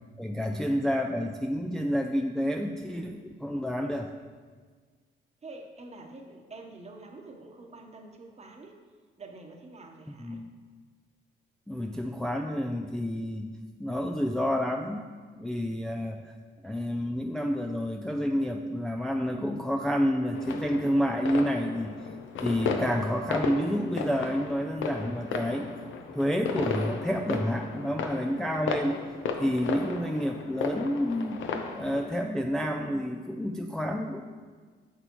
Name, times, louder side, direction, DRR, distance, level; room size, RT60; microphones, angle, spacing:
voice 1, 0.2-4.1 10.2-10.5 11.7-13.5 13.8-15.1 15.4-16.3 16.6-22.1 22.4-25.7 26.1-31.4 31.7-34.2, equal, 5° left, 2 dB, 0.4 m, -29 dB
voice 2, 5.4-8.8 9.2-10.4, right 2 dB, 35° right, 3 dB, 1.0 m, -47 dB
sound 1, 20.3-32.1, left 5 dB, 75° left, 0.7 m, -35 dB
8.3 x 6.8 x 3.0 m, 1.5 s
cardioid pair, 90°, 20 cm